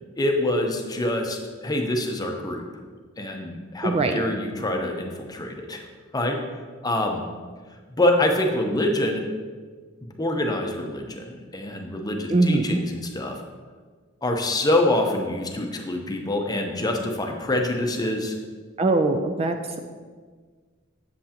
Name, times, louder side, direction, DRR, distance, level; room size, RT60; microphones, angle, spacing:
voice 1, 0.2-2.6 3.2-5.8 6.1-6.4 6.8-7.2 8.0-9.2 10.2-13.4 14.2-18.3, left 1 dB, 20° left, 3 dB, 0.7 m, -25 dB
voice 2, 3.8-4.1 12.3-12.8 18.8-19.8, right 2 dB, 30° right, 5 dB, 0.4 m, -22 dB
7.8 x 7.6 x 2.9 m, 1.5 s
head